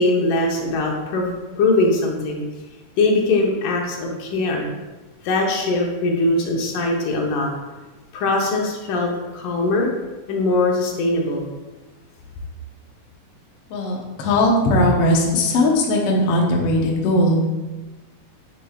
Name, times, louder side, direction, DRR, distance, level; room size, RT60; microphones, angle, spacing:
voice 1, 0.0-2.4 3.0-4.7 5.2-7.5 8.1-9.9 10.3-11.5, left 2 dB, 85° left, 0 dB, 2.6 m, -21 dB
voice 2, 13.7-17.4, left 1 dB, 60° left, -1 dB, 1.7 m, -18 dB
8.1 x 6.7 x 2.4 m, 1.2 s
omnidirectional pair, 3.6 m